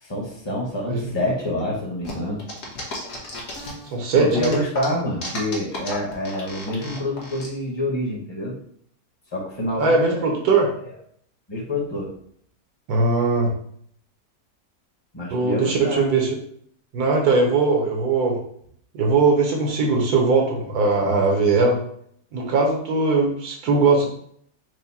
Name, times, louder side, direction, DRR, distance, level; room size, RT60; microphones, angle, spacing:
voice 1, 0.0-2.4 4.2-8.5 9.3-10.3 11.5-12.1 15.1-16.0, left 1 dB, 20° left, -3 dB, 0.9 m, -27 dB
sound 1, 2.0-3.9 4.3-7.5, left 2 dB, 55° left, 1.3 m, -34 dB
voice 2, 3.9-4.5 9.8-10.7 12.9-13.5 15.3-16.3 16.9-18.4 18.9-21.8 22.3-24.1, right 3 dB, 75° right, 0 dB, 1.4 m, -20 dB
4.7 x 2.1 x 4.1 m, 0.65 s
omnidirectional pair, 1.6 m